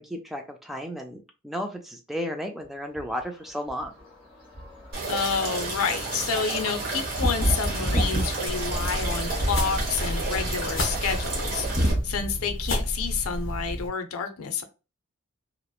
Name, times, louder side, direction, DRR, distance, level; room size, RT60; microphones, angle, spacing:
voice 1, 0.0-3.9, equal, ahead, 3 dB, 0.3 m, -33 dB
sound 1, 2.9-3.2 3.7-12.0, equal, 25° left, 1.1 m, -30 dB
sound 2, 4.9-11.9, right 3 dB, 45° right, 0.9 m, -32 dB
voice 2, 5.1-14.6, left 6 dB, 90° left, 8 dB, 0.5 m, -29 dB
sound 3, 8.5-13.9, equal, 60° left, 0.8 m, -31 dB
2.9 x 2.0 x 2.2 m, 0.30 s
head